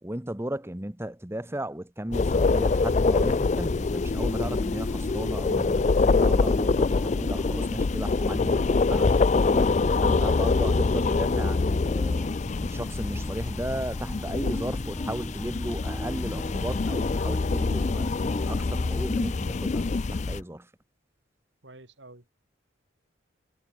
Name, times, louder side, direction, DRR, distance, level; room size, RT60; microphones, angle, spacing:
voice 1, 0.0-9.2 10.0-12.3 12.6-18.1 18.4-20.7, right 1 dB, 10° right, 1.1 m, -35 dB
sound 1, 2.1-20.4, left 3 dB, 35° left, 0.4 m, -25 dB
sound 2, 2.1-20.4, equal, 15° left, 2.3 m, -39 dB
voice 2, 9.5-10.1 21.6-22.3, right 2 dB, 65° right, 3.8 m, -47 dB
head